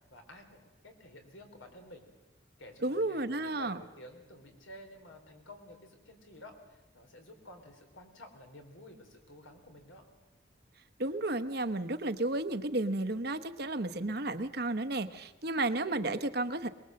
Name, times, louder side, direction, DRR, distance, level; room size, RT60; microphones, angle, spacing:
voice 1, 0.1-2.1 2.6-10.0, left 1 dB, 80° left, 4 dB, 3.9 m, -52 dB
voice 2, 2.8-3.8 11.0-16.7, right 2 dB, 50° right, 9 dB, 1.0 m, -32 dB
23.0 x 21.0 x 7.7 m, 0.99 s
head